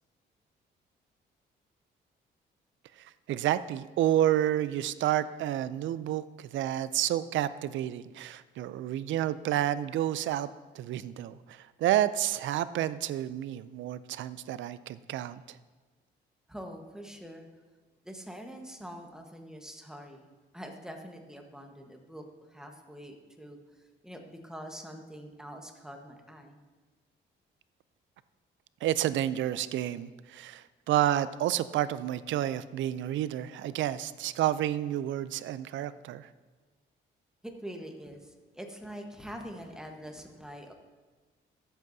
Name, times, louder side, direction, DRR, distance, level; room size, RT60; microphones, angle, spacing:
voice 1, 3.0-10.5 10.7-15.6 28.8-36.3, right 12 dB, 75° right, 15 dB, 0.4 m, -30 dB
voice 2, 16.5-17.5 18.0-20.3 20.5-22.2 22.5-23.6 24.0-26.6 37.4-40.7, equal, 5° right, 3 dB, 1.2 m, -44 dB
14.0 x 7.9 x 2.7 m, 1.3 s
cardioid pair, 90°, 20 cm